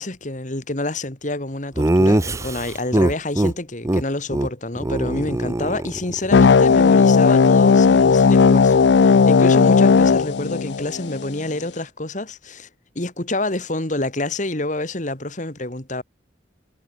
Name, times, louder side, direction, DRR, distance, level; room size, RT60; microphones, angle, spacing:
voice 1, 0.0-12.7 12.9-16.0, left 2 dB, 45° left, 2.6 m, -27 dB
Laughter, 1.8-3.5 3.8-4.0 4.3-4.5 4.8-6.3, right 1 dB, 15° right, 0.5 m, -21 dB
sound 1, 6.3-11.3, left 5 dB, 75° left, 0.4 m, -14 dB
head